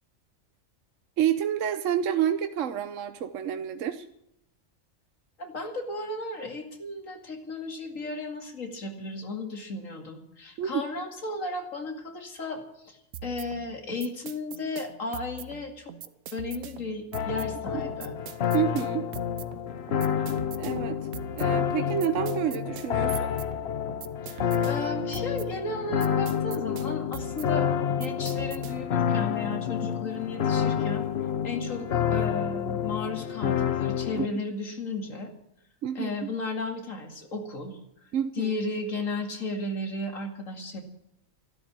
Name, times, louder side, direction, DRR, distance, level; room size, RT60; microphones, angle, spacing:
voice 1, 1.2-4.1 10.6-10.8 17.7-17.8 18.5-19.1 20.6-21.1 21.3-23.3 34.1-34.3 35.8-36.1 38.1-38.5, right 10 dB, 70° right, 9 dB, 1.1 m, -28 dB
voice 2, 5.4-15.9 16.3-18.2 24.2-31.0 31.4-35.3 35.9-37.8 38.4-40.8, left 3 dB, 70° left, 4 dB, 2.7 m, -34 dB
sound 1, 13.1-29.0, right 7 dB, 85° right, 1.2 m, -43 dB
sound 2, 17.1-34.3, left 8 dB, 55° left, 1.0 m, -29 dB
13.5 x 12.0 x 7.3 m, 0.82 s
omnidirectional pair, 1.4 m